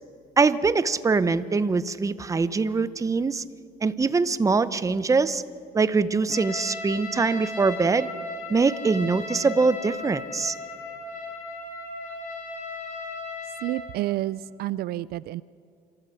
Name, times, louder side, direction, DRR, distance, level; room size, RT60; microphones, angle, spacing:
voice 1, 0.4-3.4 3.8-5.4 5.7-8.1 8.5-10.5, right 4 dB, 20° right, 14 dB, 0.7 m, -23 dB
Trumpet, 6.3-14.0, left 3 dB, 50° left, 4.2 m, -36 dB
voice 2, 13.6-15.4, right 15 dB, 70° right, 18 dB, 0.4 m, -29 dB
26.0 x 14.0 x 7.1 m, 2.3 s
cardioid pair, 110°, 17 cm